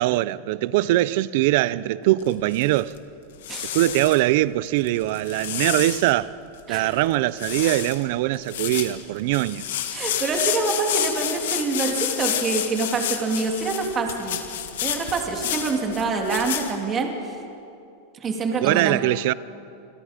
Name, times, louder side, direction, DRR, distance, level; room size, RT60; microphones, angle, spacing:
voice 1, 0.0-2.9 3.7-6.4 6.7-9.7 18.6-19.3, right 16 dB, 55° right, 0.6 m, -22 dB
sound 1, 2.2-3.0 3.4-4.2 4.9-6.1 6.6-6.7 6.9-7.1 7.4-8.0 8.3-16.7, left 11 dB, 80° left, 2.1 m, -29 dB
voice 2, 6.7-7.0 7.6-7.7 9.9-14.4 14.8-17.1 18.1-19.0, right 4 dB, 20° right, 2.6 m, -26 dB
28.5 x 21.5 x 5.1 m
supercardioid pair, 150°, 0 cm